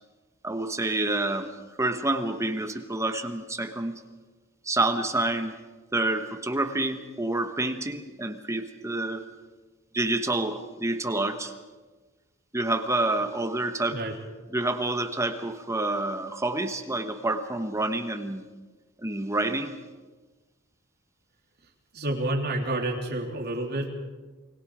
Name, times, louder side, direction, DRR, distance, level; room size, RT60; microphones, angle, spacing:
voice 1, 0.4-1.5 1.8-3.9 4.6-5.5 5.9-9.2 9.9-11.5 12.5-14.0 14.5-18.5 19.0-19.7, right 2 dB, 15° right, 7 dB, 1.2 m, -28 dB
voice 2, 21.9-23.9, right 1 dB, 50° right, 0 dB, 3.5 m, -29 dB
29.0 x 21.0 x 4.9 m, 1.3 s
head